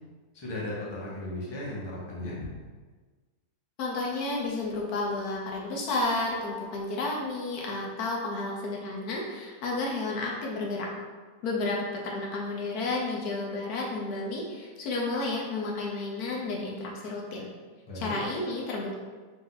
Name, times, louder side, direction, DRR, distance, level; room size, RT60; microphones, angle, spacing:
voice 1, 0.3-2.4 17.9-18.2, left 1 dB, 20° left, -6 dB, 0.9 m, -36 dB
voice 2, 3.8-10.9 11.4-17.5 17.9-19.0, left 2 dB, 80° left, -2 dB, 1.3 m, -31 dB
4.4 x 2.6 x 3.9 m, 1.4 s
omnidirectional pair, 1.6 m